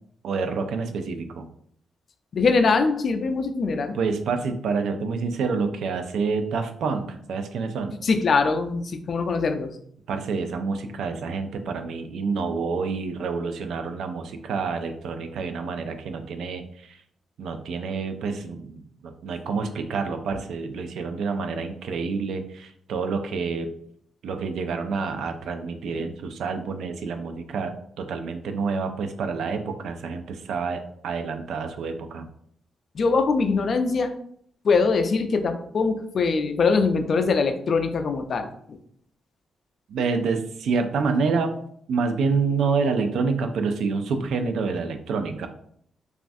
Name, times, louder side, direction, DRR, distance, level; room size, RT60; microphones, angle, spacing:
voice 1, 0.2-1.4 3.9-8.0 10.1-17.0 17.4-23.7 24.2-32.3 39.9-41.6 41.9-45.5, right 4 dB, 85° right, 7 dB, 0.3 m, -28 dB
voice 2, 2.3-4.0 8.0-9.7 32.9-34.1 34.6-38.8, left 4 dB, 60° left, 7 dB, 0.3 m, -22 dB
3.1 x 2.4 x 2.6 m, 0.67 s
cardioid pair, 75°, 0 cm